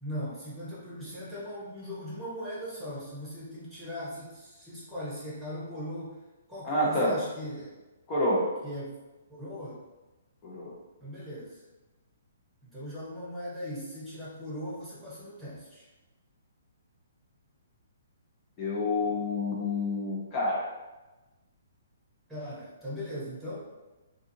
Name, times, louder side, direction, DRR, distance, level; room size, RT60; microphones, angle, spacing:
voice 1, 0.0-6.1 6.5-7.7 8.6-9.0 9.3-9.8 11.0-11.6 12.6-15.9 22.3-23.6, equal, 5° right, -8 dB, 1.0 m, -39 dB
voice 2, 6.6-7.1 8.1-8.5 10.4-10.7 18.6-20.7, left 1 dB, 30° left, -5 dB, 0.7 m, -28 dB
2.6 x 2.4 x 2.7 m, 1.1 s
figure-of-eight pair, 125°, 0 cm